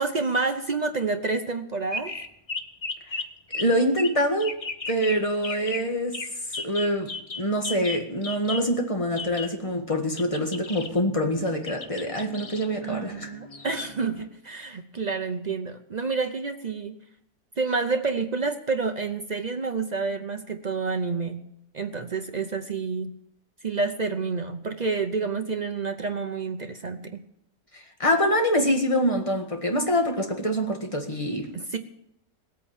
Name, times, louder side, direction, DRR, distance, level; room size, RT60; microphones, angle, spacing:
voice 1, 0.0-2.1 12.8-17.0 17.6-21.4 21.7-23.2 23.6-27.2 31.5-31.8, right 4 dB, 60° right, 0.4 m, -29 dB
sound 1, 1.9-3.2 3.5-3.6 4.0-4.1 4.4-5.2 5.4-5.8 6.1-6.3 6.5-8.6 9.2-9.5 10.2-14.2, left 3 dB, 35° left, 0.5 m, -35 dB
voice 2, 3.5-4.6 4.9-6.2 6.5-7.1 7.4-13.3 27.7-31.5, equal, 20° left, 1.7 m, -25 dB
19.0 x 8.7 x 7.2 m
omnidirectional pair, 1.9 m